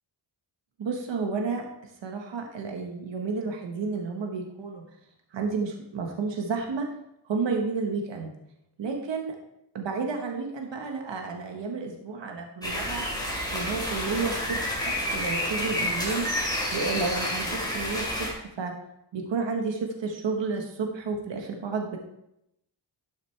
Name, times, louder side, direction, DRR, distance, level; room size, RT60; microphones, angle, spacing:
voice 1, 0.8-1.7 2.0-4.8 5.3-6.9 7.2-8.3 8.8-9.3 9.7-13.0 13.5-16.3 16.7-18.7 19.1-22.0, right 4 dB, 75° right, 2 dB, 1.3 m, -31 dB
sound 1, 12.6-18.3, equal, 10° left, 2.7 m, -29 dB
11.5 x 6.5 x 3.3 m, 0.81 s
wide cardioid pair, 110°, 45 cm